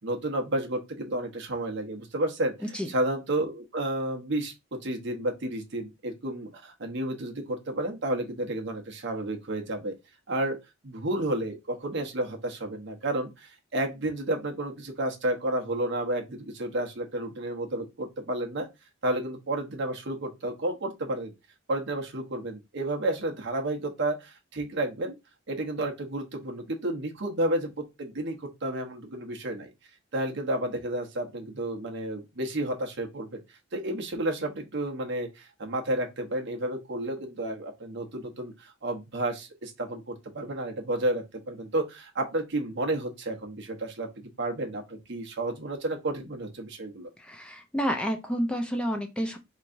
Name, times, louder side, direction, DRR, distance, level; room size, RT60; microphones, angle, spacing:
voice 1, 0.0-2.5 2.9-9.9 10.3-10.6 10.8-18.7 19.0-21.3 21.7-25.2 25.5-29.7 30.1-33.4 33.7-47.1, right 1 dB, 60° right, 0.9 m, -31 dB
voice 2, 47.2-49.4, equal, 5° left, 0.4 m, -30 dB
4.5 x 3.0 x 2.5 m
head